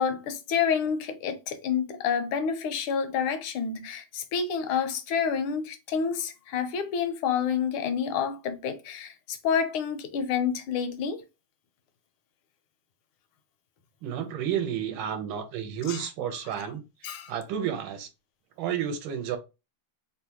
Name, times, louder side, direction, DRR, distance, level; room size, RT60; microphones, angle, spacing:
voice 1, 0.0-11.2 15.9-16.0 17.0-17.3, left 7 dB, 85° left, 1.5 m, -28 dB
voice 2, 14.0-18.1 18.6-19.4, right 9 dB, 75° right, 1.4 m, -31 dB
3.6 x 2.2 x 2.8 m
omnidirectional pair, 2.3 m